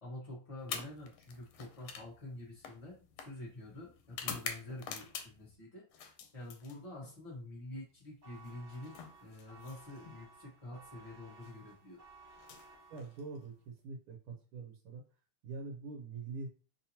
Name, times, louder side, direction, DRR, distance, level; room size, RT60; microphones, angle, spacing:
voice 1, 0.0-12.0, left 1 dB, 40° left, -6 dB, 0.5 m, -48 dB
sound 1, 0.6-5.5 5.9-7.2 8.4-10.2 11.3-11.5 12.3-13.5, left 7 dB, 80° left, 1.5 m, -46 dB
sound 2, 8.2-13.5, right 3 dB, 45° right, 1.0 m, -58 dB
voice 2, 12.9-15.0 15.4-16.5, right 4 dB, 85° right, 3 dB, 1.6 m, -44 dB
3.6 x 2.8 x 2.7 m, 0.37 s
omnidirectional pair, 2.4 m